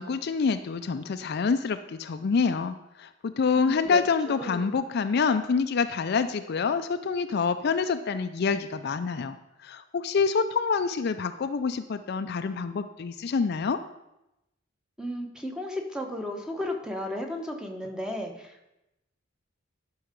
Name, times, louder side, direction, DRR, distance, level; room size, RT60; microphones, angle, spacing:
voice 1, 0.0-9.4 9.6-13.8, left 5 dB, 50° left, 10 dB, 0.4 m, -27 dB
voice 2, 3.6-4.7 15.0-18.7, left 1 dB, 5° right, 3 dB, 1.0 m, -34 dB
11.0 x 5.6 x 5.2 m, 0.91 s
head